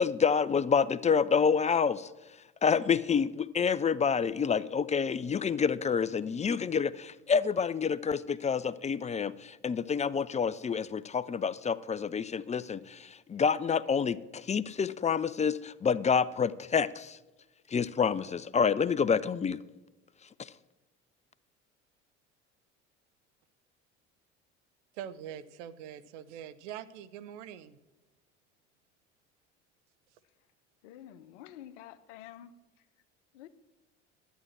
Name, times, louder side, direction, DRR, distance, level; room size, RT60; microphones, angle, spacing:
voice 1, 0.0-2.1 2.6-17.2 17.7-19.6 20.4-20.5, left 6 dB, 20° left, 0.5 m, -28 dB
voice 2, 24.9-27.8, right 10 dB, 70° right, 0.9 m, -43 dB
voice 3, 30.8-32.5 33.3-33.5, left 11 dB, 70° left, 0.9 m, -49 dB
11.5 x 9.3 x 7.5 m
hypercardioid pair, 65°, 37 cm